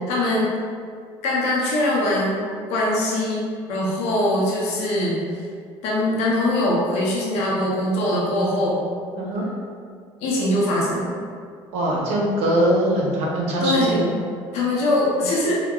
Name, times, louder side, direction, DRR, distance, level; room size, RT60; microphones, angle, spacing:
voice 1, 0.1-0.6 1.2-5.2 5.8-8.8 10.2-11.2 13.6-14.0 14.5-15.6, left 1 dB, 75° left, -5 dB, 0.7 m, -22 dB
voice 2, 11.7-14.1, right 1 dB, 75° right, -3 dB, 0.8 m, -22 dB
3.7 x 2.2 x 2.3 m, 2.2 s
supercardioid pair, 90°, 11 cm